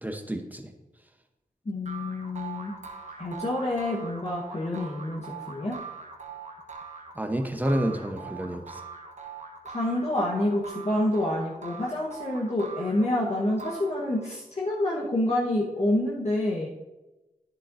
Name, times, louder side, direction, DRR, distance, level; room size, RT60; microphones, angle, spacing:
voice 1, 0.0-0.7 7.2-8.8, right 1 dB, 10° right, 6 dB, 0.9 m, -29 dB
voice 2, 1.6-2.7 3.2-5.2 5.5-5.8 9.6-16.7, left 1 dB, 45° left, -5 dB, 1.3 m, -27 dB
sound 1, 1.8-14.4, right 5 dB, 50° right, 1.1 m, -42 dB
9.9 x 7.5 x 2.7 m, 1.1 s
wide cardioid pair, 65°, 15 cm